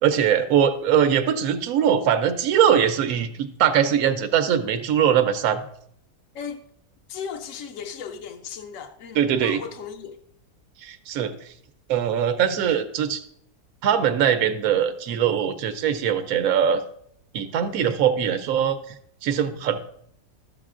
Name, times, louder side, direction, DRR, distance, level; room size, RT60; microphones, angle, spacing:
voice 1, 0.0-5.6 9.1-9.6 10.8-11.5 11.9-13.2 13.8-16.8 17.3-18.8 19.2-19.8, right 8 dB, 70° right, 1.0 m, -21 dB
voice 2, 7.1-10.2, left 6 dB, 65° left, 0.9 m, -36 dB
13.0 x 7.3 x 2.4 m
omnidirectional pair, 1.7 m